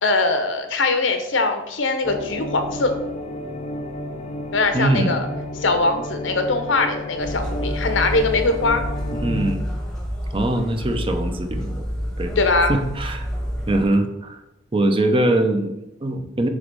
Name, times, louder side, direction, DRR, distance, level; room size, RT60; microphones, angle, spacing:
voice 1, 0.0-2.9 4.5-5.3 5.6-8.8 12.4-12.7, left 3 dB, 90° left, 7 dB, 0.9 m, -21 dB
sound 1, 2.0-9.6, left 1 dB, 30° left, 0.6 m, -31 dB
voice 2, 4.7-5.2 9.2-9.7 10.3-11.9 12.2-12.4 12.7-13.3 13.7-14.4 14.7-16.5, right 1 dB, 30° right, 6 dB, 0.6 m, -22 dB
sound 2, 7.2-13.9, equal, 5° left, 1.0 m, -29 dB
6.6 x 3.1 x 5.3 m, 0.90 s
head